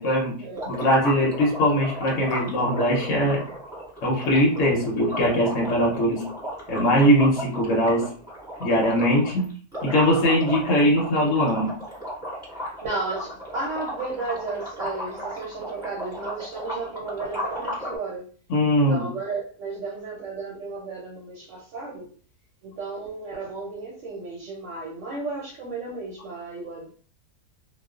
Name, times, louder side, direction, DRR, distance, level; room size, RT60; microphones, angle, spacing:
voice 1, 0.0-0.4 0.7-3.4 4.0-6.2 6.7-8.1 8.6-9.5 9.8-11.7 18.5-19.1, equal, 65° left, -1 dB, 0.9 m, -21 dB
sound 1, 0.5-18.0, equal, 5° right, 1.2 m, -35 dB
voice 2, 12.8-18.3 18.9-22.1 22.6-26.9, right 3 dB, 65° right, -3 dB, 1.0 m, -33 dB
2.3 x 2.3 x 2.3 m, 0.42 s
omnidirectional pair, 1.5 m